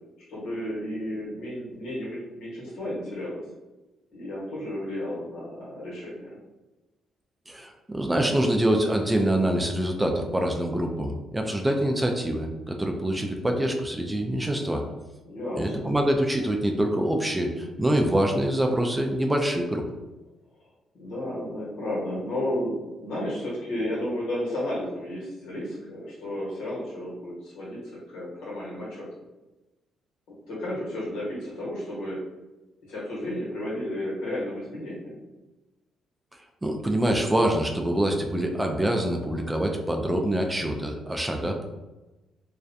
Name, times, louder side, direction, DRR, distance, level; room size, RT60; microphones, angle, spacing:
voice 1, 0.3-3.4 4.1-6.4 15.2-15.9 20.9-27.8 28.1-29.1 30.5-32.2 32.9-35.2, left 1 dB, 85° left, -6 dB, 1.1 m, -32 dB
voice 2, 7.5-14.8 15.6-19.8 36.6-41.6, right 1 dB, 10° right, 3 dB, 0.3 m, -25 dB
2.4 x 2.1 x 2.6 m, 1.1 s
cardioid pair, 90°, 0 cm